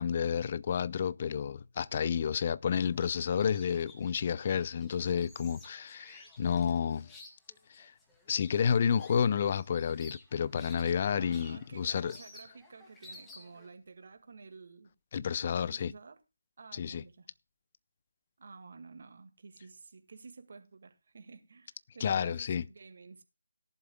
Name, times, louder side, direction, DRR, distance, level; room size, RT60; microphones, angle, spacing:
voice 1, 0.0-7.1 7.7-7.9 8.3-12.1 15.1-15.9 16.7-17.0 22.0-22.6, left 7 dB, 35° left, 0.5 m, -30 dB
sound 1, 2.9-13.7, left 2 dB, 10° left, 2.2 m, -55 dB
voice 2, 11.1-14.9 15.5-16.2 16.6-17.3 18.4-23.2, right 4 dB, 50° right, 1.8 m, -52 dB
18.0 x 11.0 x 2.2 m
figure-of-eight pair, 155°, 0 cm